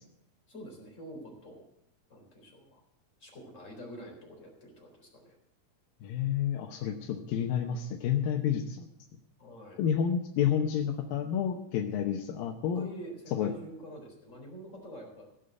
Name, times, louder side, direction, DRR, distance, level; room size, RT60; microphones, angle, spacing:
voice 1, 0.5-1.6 2.1-2.8 3.2-5.4 9.4-9.9 12.7-15.2, equal, 20° left, 0 dB, 4.0 m, -47 dB
voice 2, 6.0-8.9 9.8-12.9 13.3-13.5, left 8 dB, 85° left, 2 dB, 2.7 m, -30 dB
16.5 x 6.9 x 7.8 m, 0.80 s
omnidirectional pair, 4.0 m